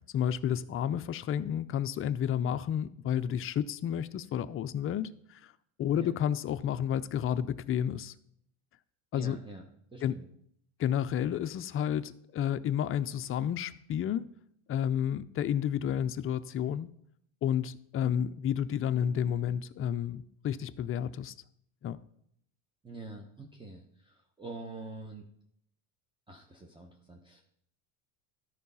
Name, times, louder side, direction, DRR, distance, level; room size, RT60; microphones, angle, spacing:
voice 1, 0.1-5.4 5.8-8.1 9.1-9.4 10.0-10.2 10.8-14.2 14.7-16.9 17.4-21.3 21.8-22.0, left 9 dB, 30° left, 0.4 m, -31 dB
voice 2, 9.1-9.7 9.9-10.3 22.8-25.2 26.3-27.4, right 3 dB, 10° right, 0.9 m, -45 dB
13.0 x 4.6 x 5.5 m
cardioid pair, 120°, 45 cm